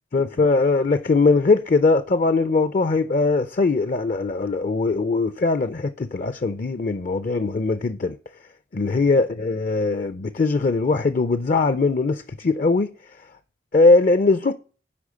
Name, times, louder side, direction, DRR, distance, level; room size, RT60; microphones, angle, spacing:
voice 1, 0.1-8.2 8.7-12.9 13.7-14.5, left 3 dB, 40° left, 0.5 m, -20 dB
8.6 x 5.0 x 6.3 m
head